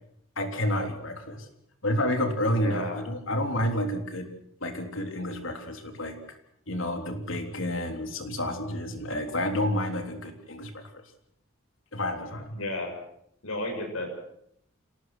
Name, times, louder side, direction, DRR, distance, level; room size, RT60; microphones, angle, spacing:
voice 1, 0.4-1.5 1.8-4.3 4.6-6.2 6.7-10.8 11.9-12.6, left 1 dB, 75° left, 5 dB, 3.5 m, -30 dB
voice 2, 2.5-3.0 12.5-13.0 13.4-14.1, left 1 dB, 90° left, 3 dB, 6.7 m, -33 dB
27.5 x 18.5 x 6.3 m, 0.71 s
head